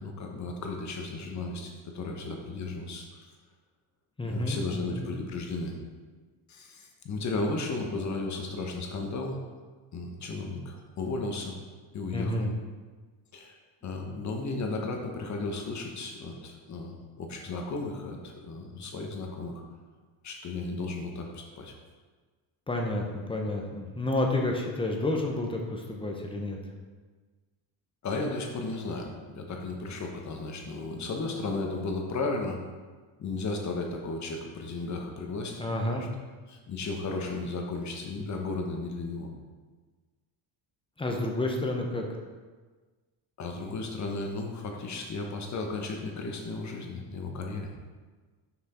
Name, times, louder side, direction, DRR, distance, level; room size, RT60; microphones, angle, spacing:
voice 1, 0.0-3.3 4.2-5.7 6.5-9.4 9.9-11.5 11.9-12.5 13.3-13.5 13.8-19.6 20.2-21.7 28.0-32.6 33.2-36.0 36.5-39.3 43.4-47.7, left 3 dB, 40° left, 2 dB, 1.1 m, -34 dB
voice 2, 4.2-5.1 12.1-12.5 22.7-26.6 35.6-36.1 41.0-42.0, left 1 dB, 10° left, 1 dB, 0.8 m, -30 dB
6.0 x 5.9 x 4.3 m, 1.4 s
cardioid pair, 135°, 46 cm